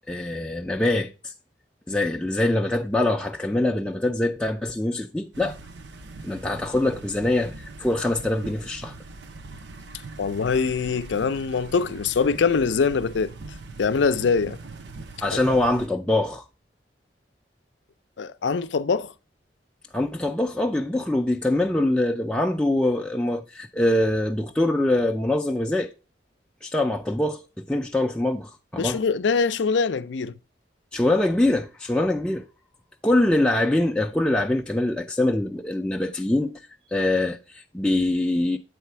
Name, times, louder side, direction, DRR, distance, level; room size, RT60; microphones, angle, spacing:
voice 1, 0.1-1.3 1.9-5.6 6.2-8.9 15.2-16.4 19.9-25.9 26.6-29.0 30.9-32.5 33.0-36.6 36.9-38.6, left 1 dB, 5° left, 0.3 m, -24 dB
sound 1, 5.3-15.9, right 3 dB, 75° right, 0.6 m, -41 dB
voice 2, 10.2-13.3 13.8-14.6 15.3-15.4 18.2-19.1 28.8-30.3, left 5 dB, 85° left, 0.5 m, -23 dB
8.3 x 4.1 x 4.5 m
head